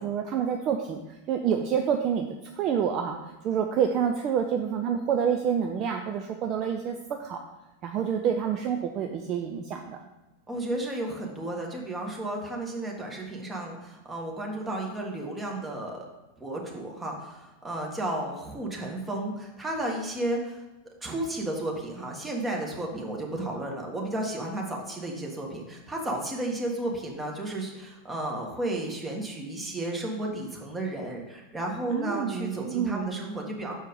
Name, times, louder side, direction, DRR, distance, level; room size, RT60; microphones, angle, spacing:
voice 1, 0.0-2.3 2.5-3.2 3.4-7.4 7.8-10.0 31.9-33.1, right 8 dB, 35° right, 4 dB, 0.5 m, -28 dB
voice 2, 10.5-16.0 16.4-20.6 21.0-33.7, right 1 dB, 10° right, 0 dB, 1.4 m, -33 dB
6.3 x 4.5 x 5.2 m, 1.0 s
figure-of-eight pair, 90°, 0 cm